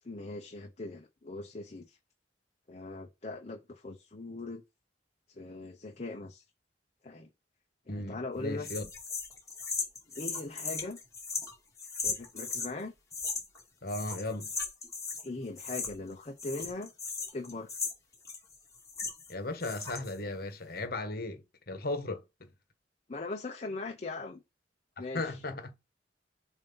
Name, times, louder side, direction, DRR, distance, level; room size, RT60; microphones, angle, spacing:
voice 1, 0.0-2.0 2.7-4.6 5.3-6.4 7.0-7.3 7.9-8.7 10.1-11.0 12.0-12.9 15.2-16.9 17.3-17.7 23.1-24.4 25.0-25.4, left 2 dB, 40° left, 0.7 m, -40 dB
voice 2, 7.9-8.8 13.8-14.5 19.3-22.2 25.1-25.7, left 2 dB, 60° left, 1.2 m, -36 dB
sound 1, 8.6-12.7 13.1-13.6 13.9-15.3 15.6-16.1 16.4-19.3 19.6-20.2, left 4 dB, 20° left, 2.6 m, -37 dB
7.3 x 2.7 x 5.5 m
head